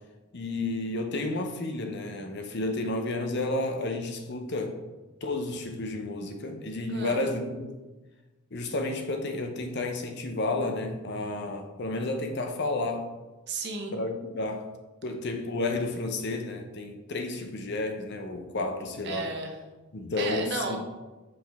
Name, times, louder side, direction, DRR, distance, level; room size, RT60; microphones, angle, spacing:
voice 1, 0.3-4.8 5.2-7.7 8.5-13.1 13.9-14.7 15.0-19.3 19.9-20.8, left 2 dB, 50° left, 5 dB, 0.7 m, -31 dB
voice 2, 13.5-13.9 19.0-19.6 20.2-20.8, right 3 dB, 50° right, 2 dB, 0.9 m, -33 dB
5.8 x 5.1 x 3.4 m, 1.1 s
head